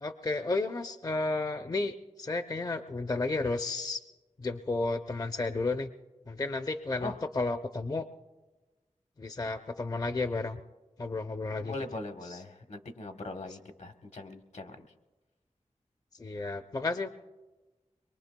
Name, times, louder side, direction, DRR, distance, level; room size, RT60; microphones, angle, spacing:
voice 1, 0.0-4.0 4.4-5.9 6.3-8.1 9.2-10.6 11.0-11.7 16.1-17.1, left 3 dB, 30° left, 8 dB, 0.5 m, -32 dB
voice 2, 11.6-14.9, left 2 dB, 70° left, 5 dB, 1.0 m, -41 dB
24.5 x 22.5 x 2.2 m, 1.2 s
wide cardioid pair, 75°, 12 cm